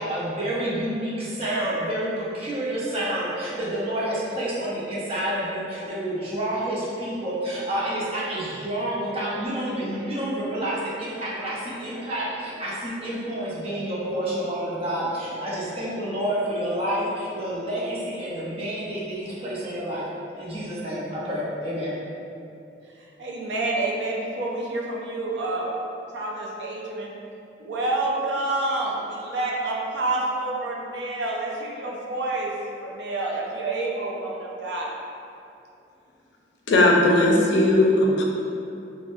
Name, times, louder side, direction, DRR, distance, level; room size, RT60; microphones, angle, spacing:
voice 1, 0.0-20.1 20.4-22.0, right 1 dB, 35° right, -7 dB, 0.6 m, -29 dB
voice 2, 23.0-25.7 26.1-27.1 27.6-32.5 32.8-34.9, right 2 dB, 80° right, -2 dB, 0.4 m, -28 dB
voice 3, 36.7-38.2, left 1 dB, 85° left, -1 dB, 0.4 m, -18 dB
3.4 x 2.0 x 2.5 m, 2.7 s
head